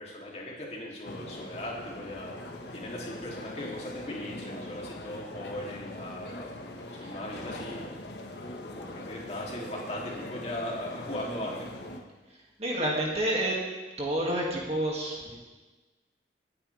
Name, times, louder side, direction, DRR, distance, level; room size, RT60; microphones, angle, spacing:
voice 1, 0.0-2.4 2.7-6.5 6.9-8.0 8.6-11.7, left 1 dB, 35° left, -3 dB, 3.0 m, -38 dB
sound 1, 1.0-12.0, left 1 dB, 70° left, 1.5 m, -42 dB
voice 2, 12.6-13.6 14.0-15.4, right 1 dB, 35° right, -3 dB, 2.3 m, -29 dB
26.5 x 9.9 x 3.5 m, 1.3 s
head